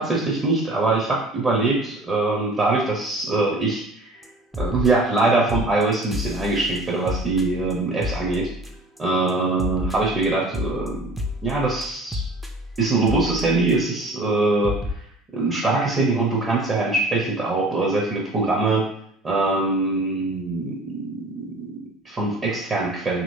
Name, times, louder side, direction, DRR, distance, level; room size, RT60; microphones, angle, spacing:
voice 1, 0.0-4.2 4.6-8.5 9.0-11.2 11.4-12.2 12.8-14.8 15.3-18.9 19.2-23.2, right 3 dB, 35° right, -3 dB, 0.9 m, -23 dB
sound 1, 4.2-4.3 4.5-5.2 5.5-9.0 9.3-14.1 14.3-14.4 14.6-14.9, left 3 dB, 10° right, 0.6 m, -31 dB
3.0 x 2.9 x 2.7 m, 0.66 s
hypercardioid pair, 70°, 0 cm